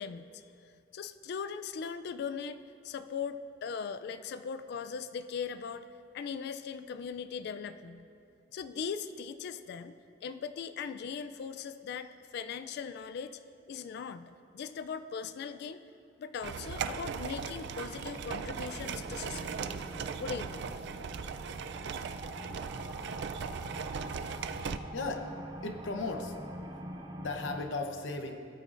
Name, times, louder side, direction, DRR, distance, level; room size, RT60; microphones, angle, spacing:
voice 1, 0.0-5.9 6.1-8.1 8.5-10.0 10.2-13.4 13.7-15.8 16.2-19.7 20.2-20.7, left 6 dB, 60° left, 11 dB, 0.3 m, -39 dB
sound 1, 16.4-24.8, right 6 dB, 65° right, 0.4 m, -38 dB
sound 2, 17.4-27.6, right 1 dB, 25° right, 0.7 m, -45 dB
voice 2, 24.9-25.4 25.6-26.4 27.2-28.4, left 3 dB, 90° left, 5 dB, 0.8 m, -36 dB
17.0 x 8.8 x 2.5 m, 2.6 s
head